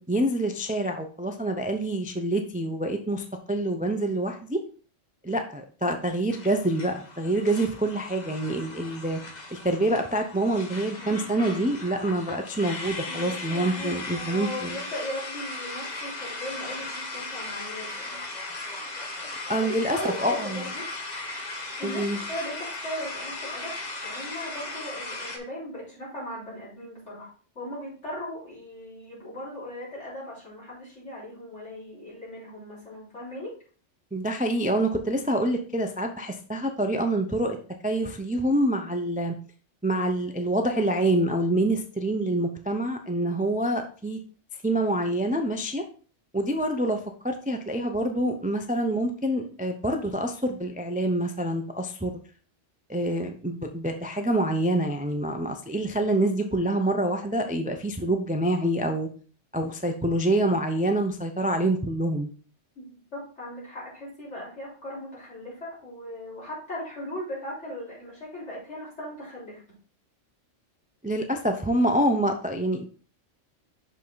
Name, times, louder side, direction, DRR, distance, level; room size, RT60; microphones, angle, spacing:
voice 1, 0.0-4.6 5.2-9.2 9.5-14.8 19.5-20.6 21.8-22.2 34.1-37.6 37.8-39.3 39.8-44.2 44.6-45.8 46.3-47.0 47.2-52.1 52.9-59.1 59.5-62.3 71.0-72.9, right 1 dB, 10° right, 5 dB, 0.5 m, -26 dB
sound 1, 6.3-25.4, left 2 dB, 40° left, 1.1 m, -37 dB
voice 2, 13.1-18.2 19.6-20.9 21.8-23.8 24.0-33.6 62.8-62.9 63.1-69.6, left 1 dB, 65° left, -7 dB, 4.4 m, -38 dB
6.5 x 5.4 x 3.9 m, 0.39 s
omnidirectional pair, 1.3 m